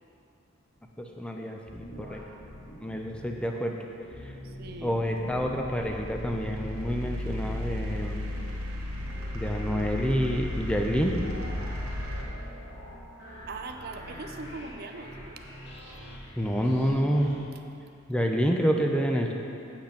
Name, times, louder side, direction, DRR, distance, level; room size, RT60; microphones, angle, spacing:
voice 1, 1.0-2.2 2.8-3.8 4.2-4.3 4.8-8.2 9.3-11.2 16.4-17.3 18.1-19.3, equal, 5° left, 2 dB, 0.5 m, -28 dB
sound 1, 1.6-3.4 3.9-17.4, equal, 55° left, 1.9 m, -45 dB
voice 2, 4.4-4.9 13.5-15.4, right 3 dB, 45° right, 5 dB, 0.6 m, -40 dB
sound 2, 5.2-12.2, left 1 dB, 85° right, 1.5 m, -34 dB
8.6 x 6.2 x 5.8 m, 2.6 s
head